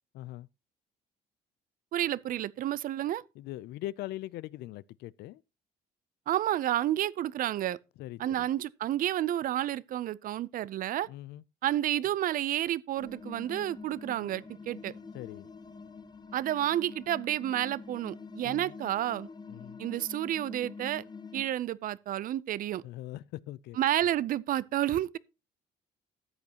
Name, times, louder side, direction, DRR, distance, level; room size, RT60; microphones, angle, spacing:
voice 1, 0.1-0.5 3.4-5.4 8.0-8.5 11.1-11.4 15.1-15.5 18.4-18.7 19.5-19.8 22.8-23.8, left 15 dB, 75° left, 0.4 m, -41 dB
voice 2, 1.9-3.2 6.3-7.8 8.2-11.1 11.6-14.9 16.3-19.3 19.8-21.0 21.3-22.8 23.8-25.2, right 12 dB, 55° right, 0.5 m, -30 dB
sound 1, 13.0-21.4, left 4 dB, 25° left, 0.9 m, -46 dB
13.5 x 8.4 x 2.9 m
cardioid pair, 110°, 17 cm